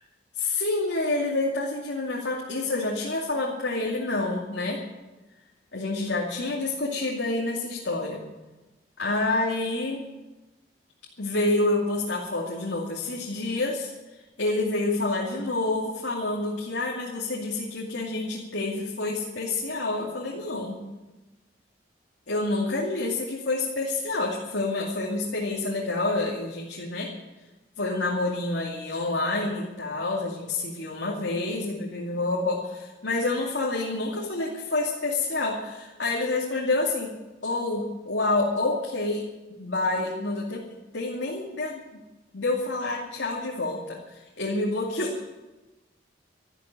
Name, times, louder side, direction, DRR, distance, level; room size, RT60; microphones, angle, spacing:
voice 1, 0.4-4.8 5.7-8.2 9.0-10.0 11.2-13.9 14.4-20.9 22.3-27.1 27.8-37.1 37.4-39.3 39.6-40.6 40.9-41.8 42.3-45.2, left 2 dB, 80° left, -3 dB, 2.6 m, -28 dB
13.5 x 12.0 x 8.9 m, 1.1 s
head